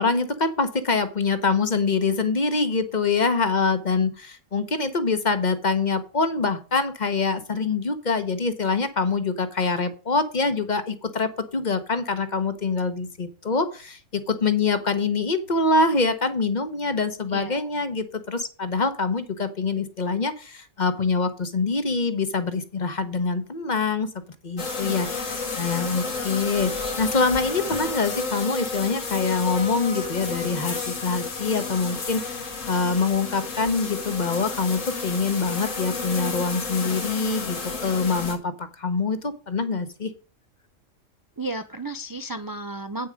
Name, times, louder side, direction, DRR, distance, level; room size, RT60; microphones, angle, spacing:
voice 1, 0.0-24.1 24.4-40.1, left 4 dB, 40° left, 10 dB, 1.0 m, -25 dB
sound 1, 24.6-38.4, left 4 dB, 85° left, 2.1 m, -31 dB
voice 2, 41.4-43.1, right 2 dB, 35° right, 7 dB, 0.3 m, -33 dB
8.9 x 6.7 x 5.0 m, 0.35 s
omnidirectional pair, 1.3 m